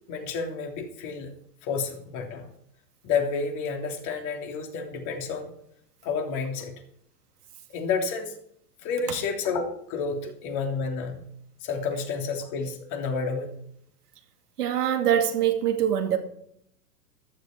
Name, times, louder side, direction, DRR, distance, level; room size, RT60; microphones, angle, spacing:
voice 1, 0.1-1.3 1.6-2.4 3.0-5.5 6.0-6.7 7.7-8.3 8.8-11.2 11.6-13.5, left 5 dB, 35° left, 3.2 m, -30 dB
voice 2, 14.6-16.2, right 10 dB, 65° right, 2.5 m, -23 dB
14.0 x 12.5 x 4.5 m
figure-of-eight pair, 105°, 49 cm